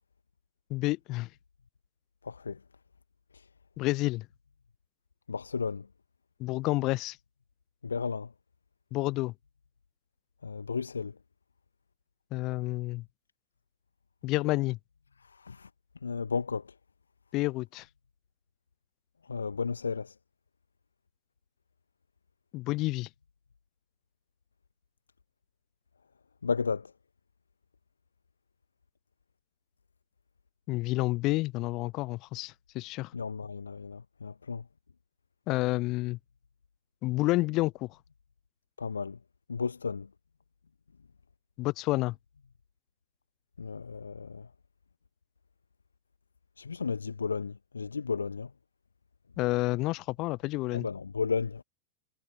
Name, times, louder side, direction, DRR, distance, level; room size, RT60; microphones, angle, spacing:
voice 1, 0.7-1.3 3.8-4.3 6.4-7.2 8.9-9.3 12.3-13.0 14.2-14.8 17.3-17.9 22.5-23.1 30.7-33.1 35.5-36.2 37.0-37.9 41.6-42.2 49.4-50.9, left 20 dB, 40° left, 0.5 m, -29 dB
voice 2, 2.2-2.6 3.3-3.5 5.3-5.9 7.8-8.3 10.4-11.1 15.2-15.7 16.0-16.7 19.3-20.1 26.4-26.9 33.1-34.6 38.8-39.2 39.5-40.1 43.6-44.5 46.6-48.5 50.7-51.6, left 5 dB, 75° left, 1.3 m, -33 dB
figure-of-eight pair, 90°, 0 cm